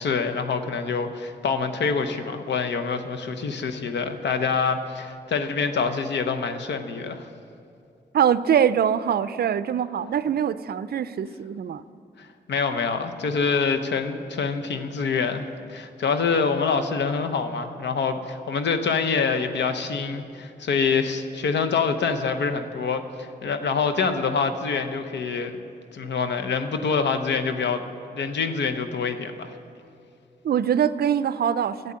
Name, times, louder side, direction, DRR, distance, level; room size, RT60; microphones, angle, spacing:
voice 1, 0.0-7.3 12.2-25.5 25.9-27.8 28.1-29.5, left 5 dB, 85° left, 7 dB, 0.9 m, -26 dB
voice 2, 8.1-11.8 30.4-31.9, right 8 dB, 65° right, 15 dB, 0.4 m, -23 dB
11.0 x 8.1 x 8.5 m, 2.4 s
wide cardioid pair, 105°, 18 cm